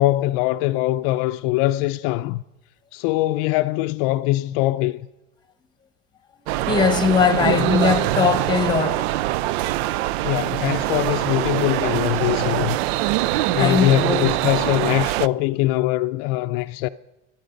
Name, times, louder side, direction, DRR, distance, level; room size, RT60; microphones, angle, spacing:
voice 1, 0.0-2.4 2.9-5.0 7.5-7.7 10.2-12.8 13.5-16.9, left 17 dB, 60° left, 0.5 m, -22 dB
sound 1, 6.5-15.3, right 16 dB, 85° right, 0.5 m, -23 dB
voice 2, 6.7-9.1 13.5-14.3, left 6 dB, 15° left, 1.0 m, -20 dB
25.0 x 9.1 x 5.2 m
supercardioid pair, 145°, 31 cm